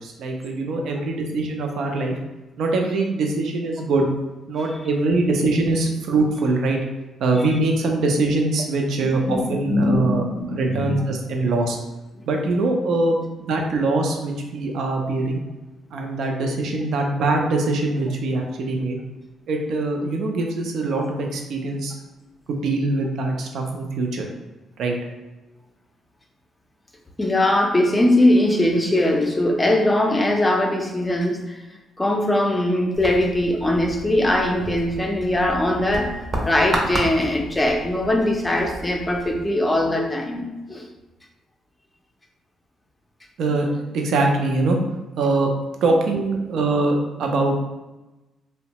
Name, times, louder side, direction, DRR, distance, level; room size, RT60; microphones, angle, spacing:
voice 1, 0.0-2.1 2.6-4.1 4.5-6.8 7.2-10.2 10.5-11.8 12.3-15.4 15.9-19.0 19.5-21.9 22.5-24.3 24.8-24.9 43.4-44.8 45.2-45.5 45.8-47.7, right 2 dB, 75° right, 2 dB, 0.5 m, -23 dB
voice 2, 9.0-9.4 9.7-11.0 27.2-31.6 32.0-40.9, left 1 dB, 15° left, 2 dB, 0.5 m, -21 dB
sound 1, 32.9-39.5, right 1 dB, 40° right, 0.6 m, -32 dB
2.7 x 2.1 x 2.9 m, 1.1 s
cardioid pair, 90°, 0 cm